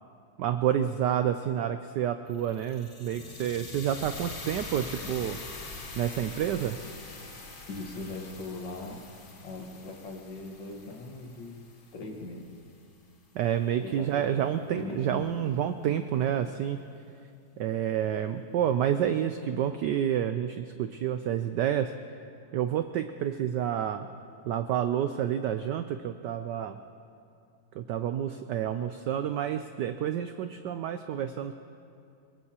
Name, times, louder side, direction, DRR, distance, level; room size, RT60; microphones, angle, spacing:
voice 1, 0.4-5.4 6.0-6.8 13.3-16.8 17.6-21.9 22.5-24.1 24.4-26.8 27.8-31.5, right 10 dB, 80° right, 9 dB, 0.9 m, -29 dB
sound 1, 2.3-12.5, left 3 dB, 40° left, 0.8 m, -44 dB
voice 2, 7.7-9.0 9.4-11.6 11.9-12.5 13.8-14.4 14.7-15.4, left 3 dB, 60° left, 1 dB, 2.0 m, -40 dB
22.5 x 21.5 x 2.9 m, 2.5 s
omnidirectional pair, 2.4 m